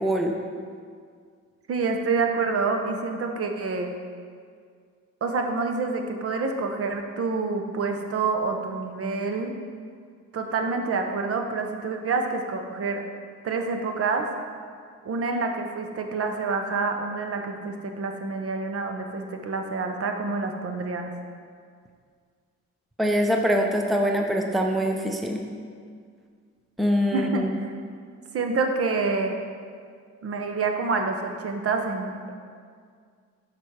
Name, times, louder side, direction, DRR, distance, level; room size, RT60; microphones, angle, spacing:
voice 1, 0.0-0.3 23.0-25.4 26.8-27.6, equal, ahead, 2 dB, 0.6 m, -24 dB
voice 2, 1.7-3.9 5.2-9.5 10.3-13.0 13.4-14.3 15.0-21.1 27.1-27.7 28.3-29.4 30.2-32.3, right 4 dB, 50° right, 4 dB, 0.8 m, -27 dB
6.8 x 5.1 x 4.7 m, 2.1 s
cardioid pair, 90°, 30 cm